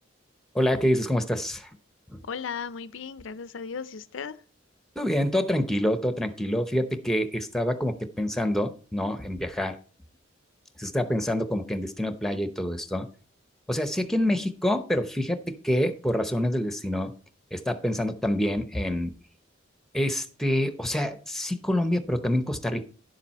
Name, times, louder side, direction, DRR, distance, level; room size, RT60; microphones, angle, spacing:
voice 1, 0.5-1.7 2.1-2.2 5.0-9.8 10.8-13.1 13.7-17.1 17.5-19.1 19.9-22.9, left 1 dB, ahead, 0.8 m, -27 dB
voice 2, 2.2-4.4, left 6 dB, 80° left, 0.5 m, -36 dB
11.0 x 7.4 x 4.2 m
head